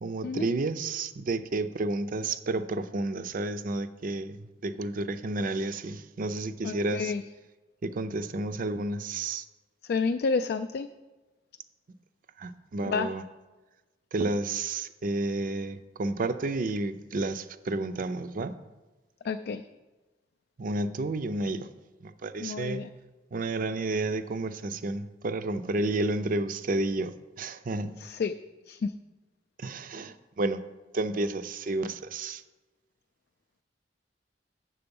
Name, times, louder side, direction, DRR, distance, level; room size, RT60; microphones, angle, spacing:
voice 1, 0.0-4.4 4.6-7.1 7.8-9.4 12.4-13.2 14.1-18.5 20.6-21.7 22.2-22.8 23.3-27.9 29.6-30.6 30.9-32.4, right 2 dB, 50° right, 12 dB, 0.5 m, -31 dB
voice 2, 6.6-7.2 9.9-10.9 12.9-13.1 19.2-19.6 22.4-22.9 28.0-28.3 28.7-28.9, left 4 dB, 60° left, 9 dB, 0.3 m, -30 dB
7.6 x 6.9 x 5.3 m, 1.2 s
head